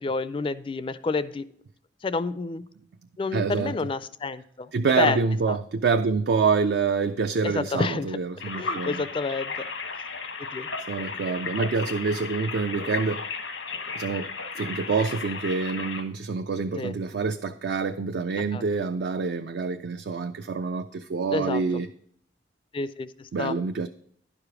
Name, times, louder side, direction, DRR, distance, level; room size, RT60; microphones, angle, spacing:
voice 1, 0.0-1.5 2.0-2.6 3.2-4.7 5.0-5.2 5.5-5.6 7.4-8.2 8.6-9.6 10.4-10.7 16.8-16.9 18.5-18.6 21.3-21.6 22.7-23.5, left 4 dB, 30° left, 0.3 m, -29 dB
voice 2, 3.3-3.8 4.7-9.1 10.9-13.3 14.0-21.9 23.3-23.9, right 4 dB, 60° right, 0.4 m, -26 dB
sound 1, 8.4-16.0, left 4 dB, 90° left, 1.1 m, -34 dB
11.0 x 5.0 x 4.8 m
head